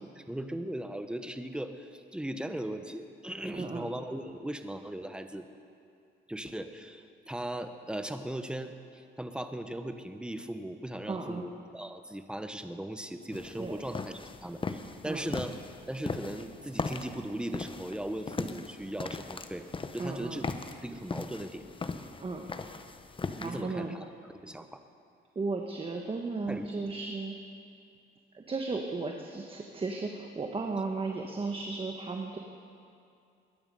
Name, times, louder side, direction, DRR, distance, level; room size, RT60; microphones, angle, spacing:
voice 1, 0.2-5.5 6.3-15.5 15.9-19.7 19.9-20.5 20.8-21.6 23.4-24.0 24.4-24.8 26.5-26.9, right 1 dB, 5° right, 8 dB, 1.0 m, -38 dB
voice 2, 3.5-3.9 11.1-11.5 13.5-13.8 15.0-15.3 20.0-20.4 22.2-22.5 23.4-24.0 25.3-27.4 28.3-32.4, right 3 dB, 25° right, 2 dB, 1.2 m, -35 dB
sound 1, 13.3-23.6, left 4 dB, 25° left, 0.8 m, -39 dB
20.5 x 10.5 x 5.5 m, 2.6 s
cardioid pair, 90°, 20 cm